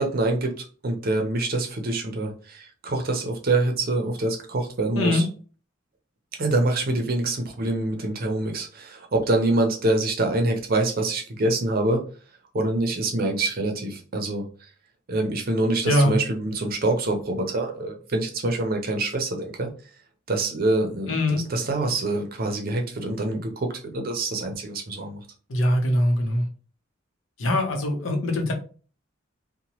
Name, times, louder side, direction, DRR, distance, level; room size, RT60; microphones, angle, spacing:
voice 1, 0.0-5.2 6.4-12.0 12.5-14.5 15.1-19.7 20.3-23.7 23.9-25.2, right 2 dB, 50° right, 4 dB, 0.6 m, -25 dB
voice 2, 15.8-16.2 21.1-21.4 25.5-26.5 27.4-28.5, left 1 dB, 80° left, 2 dB, 0.7 m, -22 dB
2.9 x 2.2 x 2.9 m, 0.39 s
head